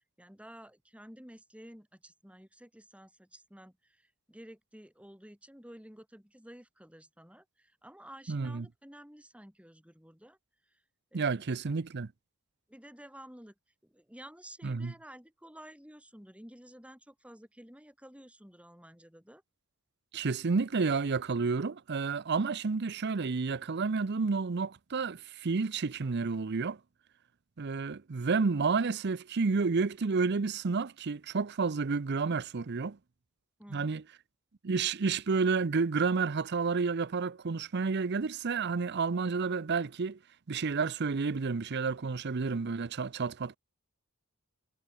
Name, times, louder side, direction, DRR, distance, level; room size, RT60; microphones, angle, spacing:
voice 1, 0.0-10.4 11.1-11.4 12.7-13.5 13.8-19.4 33.6-33.9, equal, 5° right, 7.6 m, -52 dB
voice 2, 8.3-8.7 11.1-12.1 14.6-14.9 20.1-26.8 27.6-33.0 33.7-34.0 34.6-40.2 40.5-43.6, right 4 dB, 55° right, 0.6 m, -30 dB
head